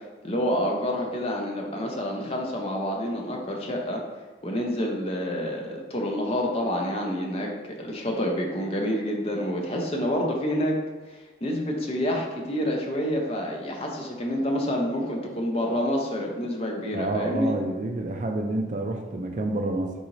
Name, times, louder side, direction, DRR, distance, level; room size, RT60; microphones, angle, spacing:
voice 1, 0.2-4.0 4.4-7.5 7.8-10.7 11.1-17.5, equal, 30° left, 0 dB, 0.6 m, -28 dB
voice 2, 16.9-19.9, right 2 dB, 40° right, 4 dB, 0.3 m, -28 dB
4.0 x 3.7 x 3.1 m, 1.2 s
head